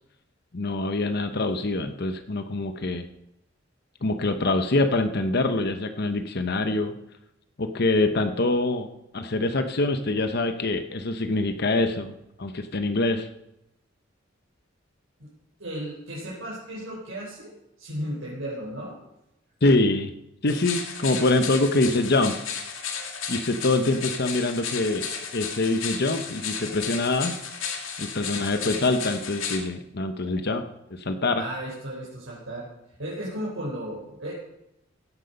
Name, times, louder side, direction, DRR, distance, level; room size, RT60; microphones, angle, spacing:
voice 1, 0.5-3.0 4.0-6.9 7.6-8.9 9.1-12.1 12.4-13.3 19.6-20.1 20.4-22.3 23.3-25.1 25.3-27.3 28.0-30.6 30.9-31.4, left 2 dB, 55° left, 8 dB, 0.9 m, -24 dB
voice 2, 15.6-17.5 17.8-18.9 31.3-32.7 33.0-34.4, right 1 dB, 85° right, -6 dB, 4.1 m, -34 dB
sound 1, 20.5-29.6, left 6 dB, 90° left, 2.1 m, -34 dB
16.0 x 8.3 x 5.3 m, 0.85 s
head